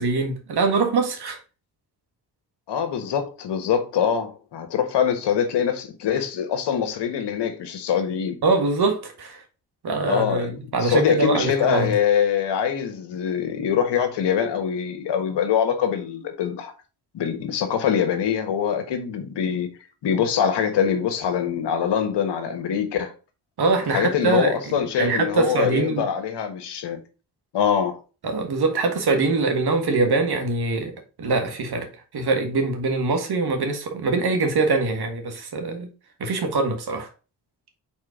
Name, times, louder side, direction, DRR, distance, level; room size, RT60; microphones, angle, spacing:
voice 1, 0.0-1.4 8.4-9.4 9.8-11.9 23.6-26.1 28.2-30.9 31.2-31.9 32.1-35.9 36.2-37.1, right 3 dB, 65° right, 1.7 m, -23 dB
voice 2, 2.7-8.4 10.0-10.5 10.8-16.7 17.1-19.7 20.0-23.1 23.9-27.0 27.5-28.0, left 8 dB, 75° left, 1.3 m, -24 dB
4.3 x 4.3 x 5.1 m
supercardioid pair, 45°, 42 cm